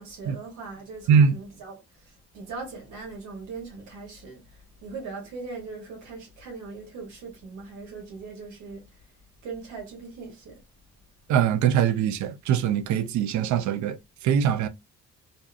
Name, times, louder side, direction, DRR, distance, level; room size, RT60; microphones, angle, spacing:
voice 1, 0.0-9.1 9.4-10.6, right 4 dB, 90° right, 1.0 m, -40 dB
voice 2, 11.3-14.7, right 8 dB, 70° right, 0.4 m, -22 dB
2.6 x 2.4 x 2.4 m
cardioid pair, 90°, 30 cm